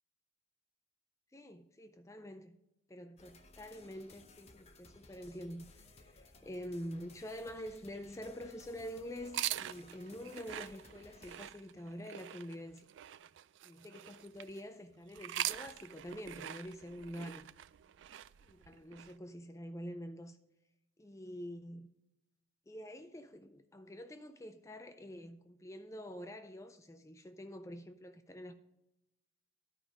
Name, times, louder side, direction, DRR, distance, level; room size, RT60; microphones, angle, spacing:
voice 1, 1.3-2.6 2.9-12.9 13.6-17.5 18.5-20.4 21.0-21.9 22.7-28.5, equal, 15° left, 0.4 m, -46 dB
sound 1, 3.2-11.4, left 3 dB, 35° left, 0.8 m, -59 dB
sound 2, 9.2-14.6 15.1-19.1, right 13 dB, 65° right, 0.3 m, -43 dB
12.0 x 5.2 x 4.9 m
head